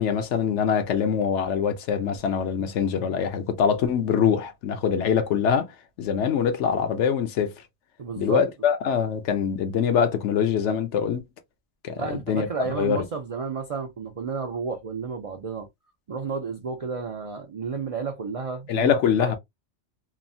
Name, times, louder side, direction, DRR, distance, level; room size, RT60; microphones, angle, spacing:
voice 1, 0.0-5.7 6.0-7.5 8.2-11.2 11.8-12.5 12.8-13.0 18.7-19.4, left 7 dB, 75° left, 0.9 m, -24 dB
voice 2, 8.0-8.4 12.0-15.7 16.1-19.4, right 5 dB, 70° right, 0.3 m, -32 dB
3.0 x 2.0 x 2.6 m
omnidirectional pair, 1.2 m